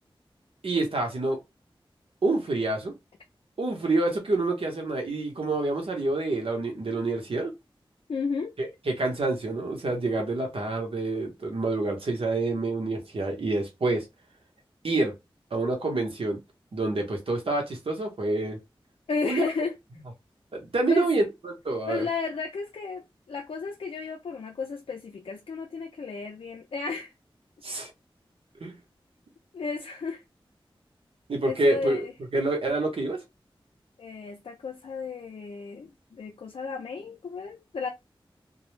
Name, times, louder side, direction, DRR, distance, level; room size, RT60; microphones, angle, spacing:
voice 1, 0.6-1.4 2.2-2.9 3.6-7.5 8.6-14.1 14.8-15.1 15.5-16.4 16.7-18.6 19.2-19.4 20.5-22.1 27.6-27.9 28.6-28.8 31.3-32.1 32.3-33.2, right 2 dB, 80° right, 0.9 m, -27 dB
voice 2, 8.1-8.6 19.1-19.7 20.9-21.1 21.9-27.1 29.5-30.2 31.4-32.1 34.0-37.9, left 4 dB, 80° left, 0.4 m, -33 dB
2.2 x 2.0 x 3.1 m
wide cardioid pair, 45°, 9 cm